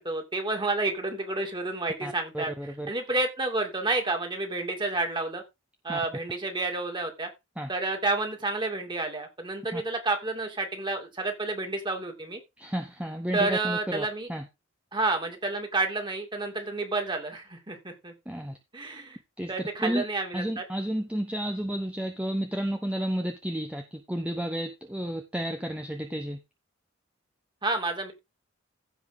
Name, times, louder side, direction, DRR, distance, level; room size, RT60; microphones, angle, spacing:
voice 1, 0.0-2.5 2.9-5.4 5.8-7.3 7.7-12.4 13.3-14.3 14.9-18.1 18.7-19.2 19.5-20.6 27.6-28.1, right 2 dB, 25° right, 3 dB, 2.9 m, -30 dB
voice 2, 2.0-2.9 5.9-6.0 7.6-7.7 9.7-9.8 12.6-14.4 18.3-18.6 19.4-19.5 19.8-20.0 20.3-26.4, equal, 5° right, 4 dB, 1.1 m, -32 dB
15.5 x 5.4 x 3.9 m, 0.23 s
head